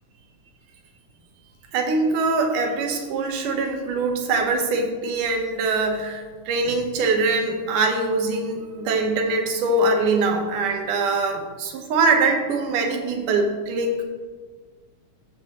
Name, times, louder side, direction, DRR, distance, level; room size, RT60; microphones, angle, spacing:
voice 1, 1.7-14.0, right 3 dB, 75° right, 4 dB, 2.6 m, -23 dB
14.0 x 7.5 x 3.0 m, 1.5 s
omnidirectional pair, 3.8 m